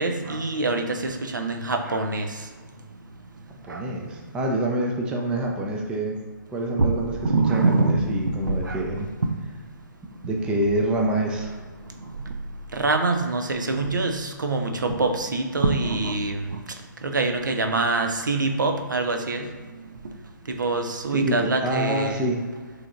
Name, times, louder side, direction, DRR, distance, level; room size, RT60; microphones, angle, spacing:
voice 1, 0.0-2.3 3.7-3.8 6.8-8.4 8.7-8.8 9.2-9.3 12.7-16.6 17.0-19.4 20.6-22.3, right 3 dB, 70° right, 5 dB, 0.6 m, -24 dB
voice 2, 3.6-6.2 6.5-7.1 7.5-9.1 10.2-11.5 21.1-22.4, right 1 dB, 10° right, 1 dB, 0.4 m, -26 dB
6.5 x 3.3 x 2.5 m, 1.4 s
figure-of-eight pair, 130°, 11 cm